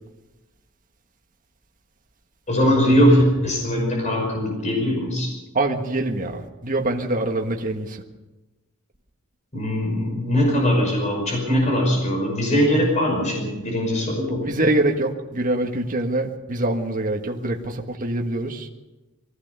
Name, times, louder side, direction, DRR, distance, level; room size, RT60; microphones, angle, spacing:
voice 1, 2.5-5.3 9.5-14.5, equal, 35° left, 0 dB, 5.6 m, -21 dB
voice 2, 5.5-8.0 14.4-18.7, right 2 dB, 40° right, 1 dB, 1.6 m, -24 dB
23.5 x 16.5 x 6.9 m, 1.1 s
head